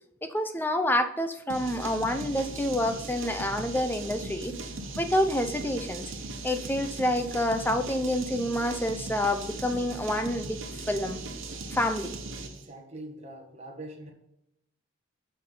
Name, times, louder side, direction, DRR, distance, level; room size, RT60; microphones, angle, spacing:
voice 1, 0.2-4.5 5.0-6.0 6.4-10.6 10.9-11.2 11.7-12.2, left 1 dB, 10° left, 7 dB, 0.8 m, -28 dB
sound 1, 1.5-12.7, right 2 dB, 75° right, 1.4 m, -38 dB
voice 2, 12.4-14.1, right 1 dB, 30° right, 0 dB, 1.8 m, -43 dB
13.5 x 5.5 x 3.9 m, 0.80 s
head